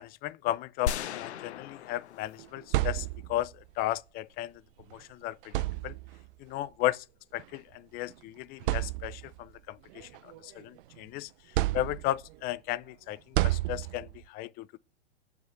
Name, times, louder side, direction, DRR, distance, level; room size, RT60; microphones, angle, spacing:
voice 1, 0.0-4.5 4.9-5.5 5.8-6.0 6.4-7.0 7.3-11.3 11.7-14.7, left 15 dB, 30° left, 0.5 m, -35 dB
sound 1, 0.9-3.1, left 8 dB, 80° left, 0.7 m, -37 dB
fridge small close door thump +hostel kitchen bg, 2.4-3.5 4.8-4.9 5.4-6.3 7.4-7.6 8.1-8.2 8.6-9.4 9.9-11.0 11.5-12.4 13.3-14.2, right 17 dB, 55° right, 0.5 m, -31 dB
7.3 x 3.9 x 6.4 m
hypercardioid pair, 115°, 33 cm